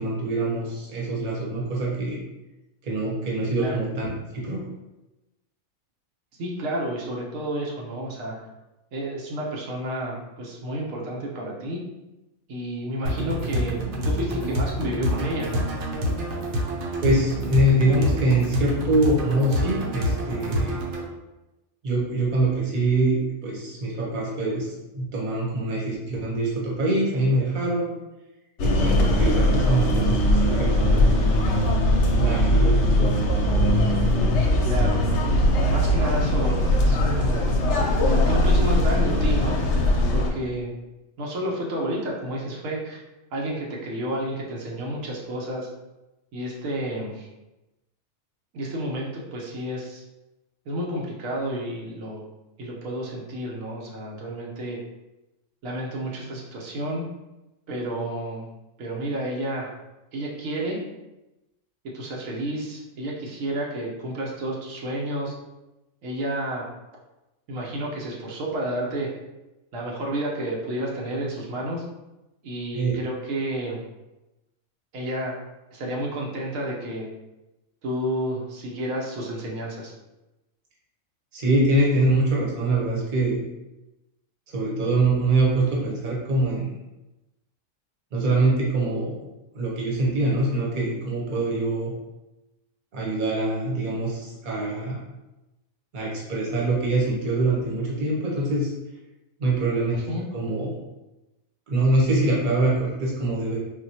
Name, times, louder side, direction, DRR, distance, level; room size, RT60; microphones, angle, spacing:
voice 1, 0.0-2.2 2.8-4.1 4.3-4.6 17.0-20.8 21.8-27.9 28.6-31.2 32.2-33.2 72.7-72.9 81.3-83.4 84.5-86.7 88.1-89.2 89.5-91.9 92.9-95.0 95.9-98.7 99.4-100.0 100.3-100.7 101.7-103.6, right 2 dB, 45° right, -4 dB, 0.9 m, -24 dB
voice 2, 6.4-8.4 8.9-11.8 12.5-15.6 34.6-35.0 35.7-37.6 38.0-39.6 40.1-40.7 41.2-43.0 43.3-45.7 46.3-47.3 48.5-50.0 50.7-52.2 52.6-54.8 55.6-57.0 57.7-58.5 58.8-59.7 60.1-60.8 61.9-65.3 66.0-66.6 67.5-69.1 69.7-71.8 72.4-73.8 74.9-75.3 75.7-77.1 77.8-79.9 99.9-100.2, right 1 dB, 90° right, -2 dB, 1.1 m, -30 dB
sound 1, 13.0-21.0, equal, 65° right, 0.9 m, -27 dB
sound 2, 28.6-40.3, left 1 dB, 70° left, 0.8 m, -20 dB
3.9 x 2.2 x 2.7 m, 1.0 s
omnidirectional pair, 1.4 m